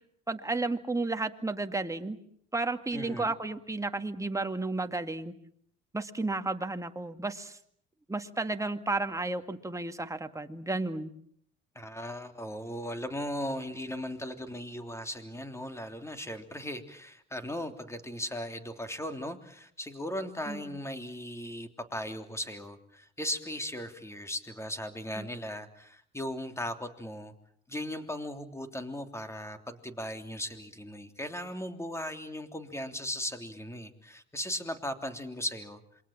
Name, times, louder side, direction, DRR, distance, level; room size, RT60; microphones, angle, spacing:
voice 1, 0.3-2.2 2.5-5.3 5.9-7.6 8.1-11.1 20.5-20.6 25.2-25.3, right 2 dB, 10° right, 6 dB, 2.1 m, -32 dB
voice 2, 2.9-3.3 11.7-27.3 27.7-35.8, left 1 dB, 10° left, 7 dB, 3.2 m, -37 dB
27.5 x 23.0 x 7.4 m, 0.66 s
supercardioid pair, 80°, 29 cm